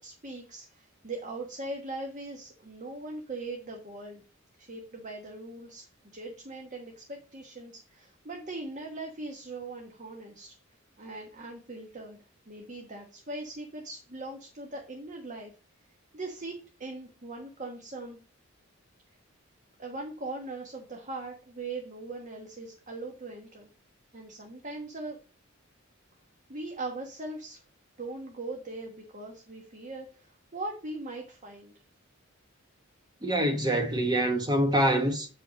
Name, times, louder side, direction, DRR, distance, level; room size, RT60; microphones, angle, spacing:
voice 1, 0.0-4.2 4.6-5.9 6.1-10.5 11.0-12.2 12.5-15.5 16.1-18.2 19.8-23.7 24.1-25.2 26.5-27.6 28.0-31.7, right 2 dB, 35° right, 1.3 m, -40 dB
voice 2, 33.2-35.3, right 1 dB, 20° right, 0.9 m, -25 dB
8.1 x 5.6 x 4.0 m
head